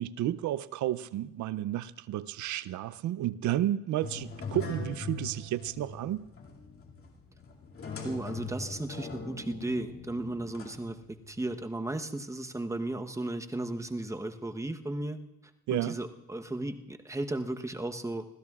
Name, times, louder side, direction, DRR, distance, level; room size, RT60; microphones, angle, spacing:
voice 1, 0.0-6.2 15.7-16.0, right 13 dB, 75° right, 0.5 m, -32 dB
sound 1, 4.0-11.6, left 4 dB, 45° left, 2.5 m, -42 dB
voice 2, 8.0-15.2 15.7-18.3, right 2 dB, 10° right, 1.0 m, -35 dB
26.0 x 16.0 x 2.4 m
cardioid pair, 90°, 30 cm